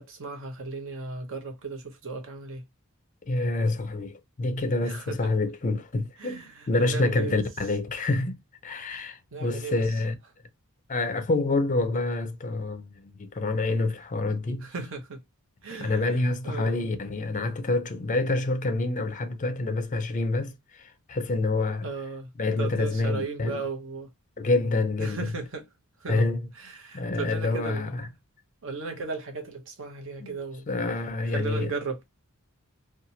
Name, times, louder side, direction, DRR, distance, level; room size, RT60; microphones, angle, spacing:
voice 1, 0.0-2.6 4.8-5.2 6.2-7.4 8.9-9.8 14.6-15.2 15.6-16.0 16.4-16.8 21.8-22.3 22.6-24.1 25.0-25.6 26.0-26.3 26.6-28.1 28.6-30.7 31.3-32.0, right 4 dB, 60° right, 0.8 m, -36 dB
voice 2, 3.3-6.4 6.7-8.4 8.6-10.1 10.9-14.7 15.7-20.5 21.1-21.9 22.4-23.6 24.4-25.3 26.1-26.5 26.9-28.1 30.7-31.7, left 2 dB, 35° left, 0.5 m, -27 dB
2.8 x 2.2 x 2.6 m
head